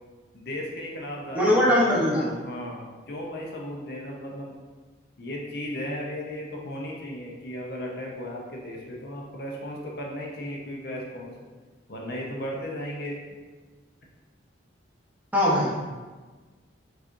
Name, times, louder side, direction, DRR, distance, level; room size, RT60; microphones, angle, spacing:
voice 1, 0.3-4.5 5.2-11.3 11.9-13.2, equal, 55° left, -2 dB, 0.6 m, -35 dB
voice 2, 1.3-2.2 15.3-15.8, left 1 dB, 10° right, -6 dB, 0.7 m, -21 dB
4.7 x 2.9 x 2.5 m, 1.3 s
head